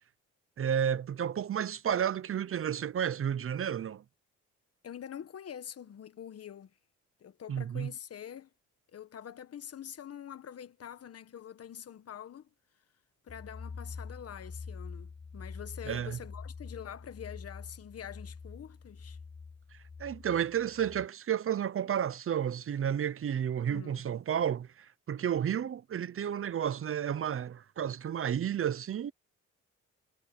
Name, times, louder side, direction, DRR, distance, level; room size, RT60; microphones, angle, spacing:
voice 1, 0.6-4.0 7.5-7.9 15.9-16.2 20.0-29.1, right 9 dB, 45° right, 0.8 m, -32 dB
voice 2, 4.8-6.7 7.2-8.5 8.9-12.5 13.2-19.2 23.7-24.0, left 9 dB, 50° left, 1.5 m, -45 dB
sound 1, 13.3-21.1, left 5 dB, 20° left, 0.9 m, -45 dB
cardioid pair, 90°, 30 cm